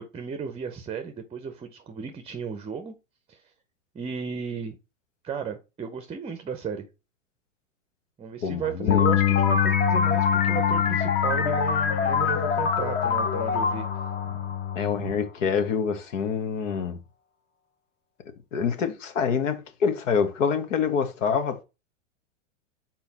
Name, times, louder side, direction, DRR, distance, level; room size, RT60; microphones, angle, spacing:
voice 1, 0.0-2.9 3.3-3.4 3.9-4.8 5.2-6.9 8.2-13.9, right 6 dB, 15° right, 0.7 m, -34 dB
voice 2, 8.4-9.0 14.7-17.0 18.5-21.6, left 6 dB, 75° left, 1.5 m, -26 dB
Bass guitar, 8.9-15.1, left 12 dB, 50° left, 0.6 m, -27 dB
sound 1, 8.9-15.1, left 5 dB, 25° left, 0.9 m, -26 dB
5.7 x 4.5 x 4.0 m
hypercardioid pair, 115°, 39 cm